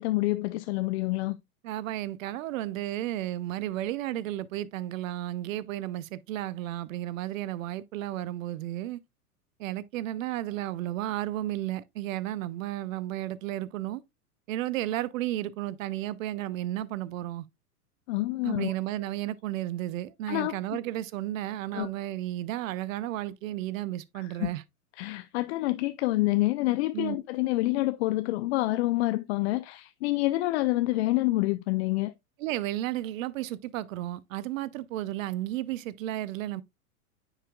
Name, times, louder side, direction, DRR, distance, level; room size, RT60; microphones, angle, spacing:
voice 1, 0.0-1.4 18.1-18.7 20.3-20.6 21.7-21.9 24.2-24.5 25.0-32.1, left 19 dB, 45° left, 0.5 m, -27 dB
voice 2, 1.6-9.0 9.6-14.0 14.5-17.5 18.4-24.6 26.9-27.2 32.4-36.6, right 14 dB, 60° right, 0.6 m, -33 dB
9.7 x 4.8 x 2.3 m
hypercardioid pair, 110°, 45 cm